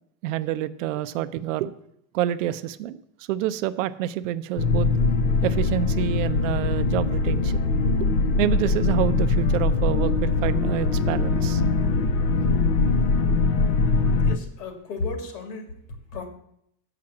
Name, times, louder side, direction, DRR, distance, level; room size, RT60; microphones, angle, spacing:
voice 1, 0.2-1.7 2.1-3.0 3.3-4.9 5.4-7.6 8.0-8.1 8.4-11.6, right 12 dB, 55° right, 12 dB, 0.5 m, -27 dB
sound 1, 4.6-14.4, left 3 dB, 40° left, 0.6 m, -22 dB
voice 2, 14.2-15.7 16.1-16.3, left 3 dB, 75° left, 5 dB, 2.4 m, -33 dB
7.4 x 5.8 x 7.5 m, 0.72 s
supercardioid pair, 170°, 48 cm